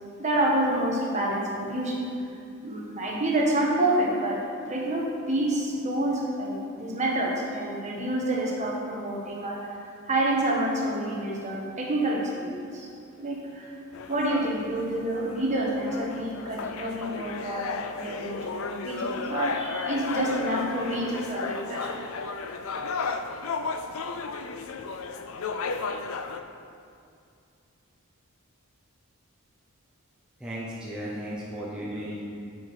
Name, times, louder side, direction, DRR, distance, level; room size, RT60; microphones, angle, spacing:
voice 1, 0.2-2.1 2.6-12.9 13.2-13.7 14.1-22.0 23.5-24.1, right 1 dB, 30° right, -3 dB, 1.3 m, -28 dB
sound 1, 13.9-26.4, left 4 dB, 65° left, 0.4 m, -34 dB
voice 2, 30.4-32.2, equal, 5° right, -7 dB, 0.8 m, -35 dB
7.8 x 5.9 x 4.8 m, 2.4 s
head